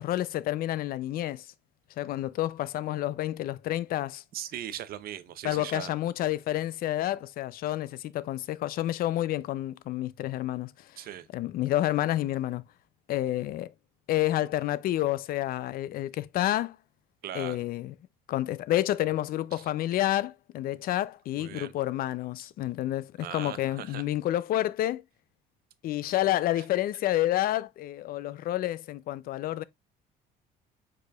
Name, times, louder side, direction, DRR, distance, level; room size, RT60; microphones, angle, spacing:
voice 1, 0.0-1.5 2.0-4.2 5.4-10.9 11.3-12.6 13.1-13.7 14.1-16.8 17.3-17.9 18.3-25.0 25.8-29.6, left 14 dB, 60° left, 0.4 m, -29 dB
voice 2, 4.3-5.9 11.0-11.3 17.2-17.6 19.5-19.7 21.4-21.7 23.2-24.0 26.6-26.7, right 11 dB, 65° right, 0.6 m, -39 dB
4.9 x 4.6 x 2.3 m
cardioid pair, 110°, 17 cm